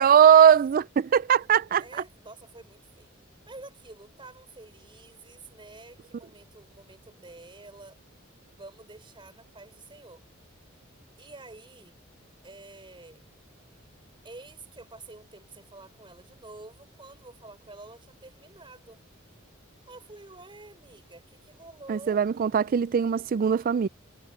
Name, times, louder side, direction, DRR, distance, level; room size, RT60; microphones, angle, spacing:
voice 1, 0.0-1.8 21.9-23.9, right 8 dB, 45° right, 0.3 m, -20 dB
voice 2, 1.8-3.1 3.5-8.0 8.5-10.2 11.2-12.0 12.4-13.3 14.2-19.0 19.9-22.2, right 2 dB, 25° right, 3.7 m, -48 dB
head